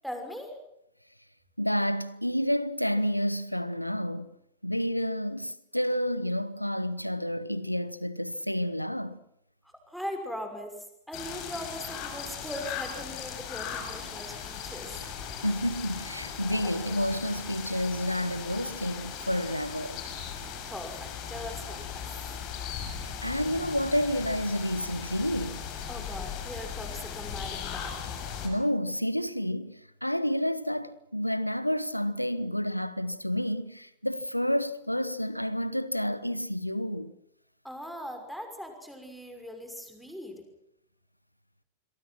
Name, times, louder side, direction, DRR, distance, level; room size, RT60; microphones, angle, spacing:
voice 1, 0.0-0.6 9.6-15.0 20.7-22.1 25.9-28.0 37.6-40.5, equal, ahead, 6.0 m, -40 dB
voice 2, 1.6-4.3 4.6-9.2 15.4-20.0 23.2-25.6 28.4-37.1, equal, 90° left, 1.2 m, -30 dB
sound 1, 11.1-28.5, left 7 dB, 40° left, 6.1 m, -38 dB
27.5 x 23.0 x 6.1 m
figure-of-eight pair, 90°, 0 cm